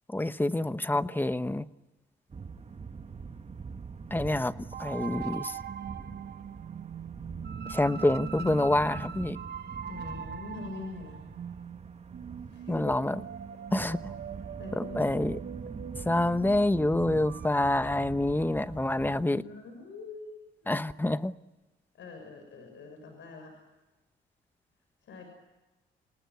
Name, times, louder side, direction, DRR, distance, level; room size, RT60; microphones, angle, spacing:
voice 1, 0.1-1.6 4.1-5.6 7.6-9.4 12.7-13.1 13.7-14.1 14.8-15.4 16.0-19.4 20.7-21.3, left 1 dB, 10° left, 12 dB, 1.1 m, -27 dB
sound 1, 2.3-19.2, right 5 dB, 35° right, 1.9 m, -44 dB
sound 2, 4.7-17.5, right 7 dB, 55° right, 1.3 m, -41 dB
voice 2, 9.9-11.2 12.5-12.8 14.6-15.0 16.2-16.4 19.3-20.3 20.6-20.7 21.9-23.6 25.0-25.3, left 3 dB, 70° left, 4 dB, 6.4 m, -44 dB
28.0 x 19.0 x 9.5 m, 1.1 s
cardioid pair, 90°, 20 cm